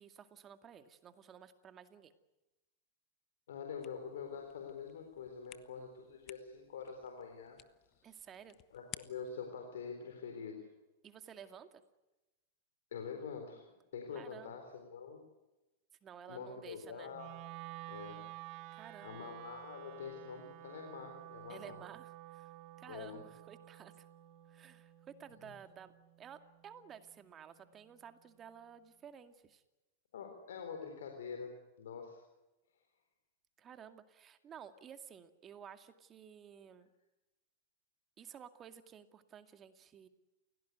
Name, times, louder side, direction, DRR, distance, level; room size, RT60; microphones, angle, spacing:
voice 1, 0.0-2.1 8.0-8.6 11.0-11.8 14.1-14.6 16.0-17.1 18.7-19.3 21.5-24.1 24.5-29.6 33.6-36.9 38.2-40.1, right 8 dB, 30° right, 8 dB, 2.2 m, -54 dB
voice 2, 3.5-7.6 8.0-8.1 8.7-10.7 12.9-13.7 13.9-15.3 16.3-17.3 17.9-18.3 19.0-21.8 22.9-23.2 25.4-25.5 30.1-32.2, left 6 dB, 75° left, 4 dB, 4.0 m, -45 dB
sound 1, 3.8-9.5, left 13 dB, 40° left, 1.2 m, -56 dB
Wind instrument woodwind instrument, 17.1-27.3, right 17 dB, 50° right, 1.3 m, -52 dB
29.0 x 17.0 x 9.4 m, 1.0 s
hypercardioid pair, 100°, 0 cm